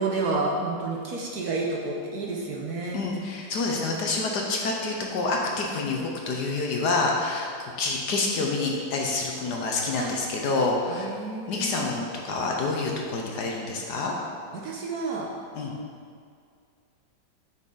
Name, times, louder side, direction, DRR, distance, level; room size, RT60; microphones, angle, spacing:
voice 1, 0.0-3.1 10.0-10.1 10.9-11.9 14.5-15.3, right 3 dB, 60° right, -2 dB, 1.2 m, -30 dB
voice 2, 2.9-6.0 6.3-7.5 7.8-11.1 11.5-14.1 15.5-15.7, left 3 dB, 65° left, 0 dB, 1.3 m, -27 dB
8.1 x 6.5 x 3.8 m, 2.2 s
omnidirectional pair, 2.2 m